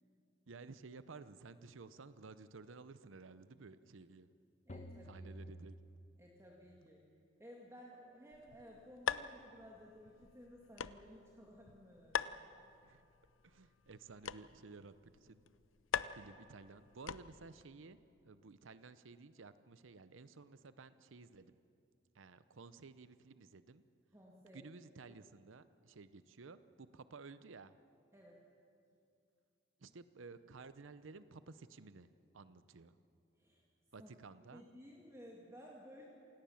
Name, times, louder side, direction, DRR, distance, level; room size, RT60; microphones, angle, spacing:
voice 1, 0.5-4.3 5.0-5.7 12.8-13.0 13.4-15.4 16.1-18.0 18.2-21.6 22.1-23.8 24.5-27.8 29.8-32.1 32.3-33.0 33.9-34.6, right 4 dB, 80° right, 14 dB, 0.7 m, -54 dB
sound 1, 4.7-6.6, equal, 35° left, 1.1 m, -52 dB
voice 2, 4.7-5.2 6.2-7.0 7.4-12.3 24.1-24.6 28.1-28.4 33.4-33.6 34.0-34.1 34.5-36.1, equal, 15° right, -2 dB, 2.0 m, -56 dB
sound 2, 8.3-17.6, left 7 dB, 80° left, 0.6 m, -45 dB
27.5 x 17.5 x 7.1 m, 2.5 s
head